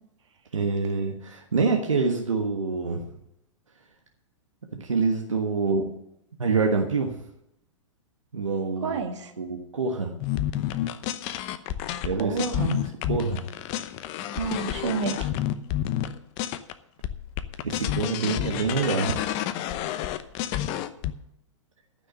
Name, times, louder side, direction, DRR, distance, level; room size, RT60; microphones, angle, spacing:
voice 1, 0.5-3.0 4.7-5.9 6.4-7.1 8.3-9.0 9.4-10.1 12.0-12.4 12.8-13.4 17.6-19.1, right 4 dB, 85° right, 2 dB, 1.4 m, -26 dB
voice 2, 8.8-9.3 12.2-12.8 14.3-15.3, right 5 dB, 70° right, 5 dB, 1.8 m, -29 dB
sound 1, 10.2-16.7 17.0-21.1, left 12 dB, 40° left, 0.8 m, -29 dB
13.5 x 6.2 x 7.8 m, 0.82 s
hypercardioid pair, 110°, 16 cm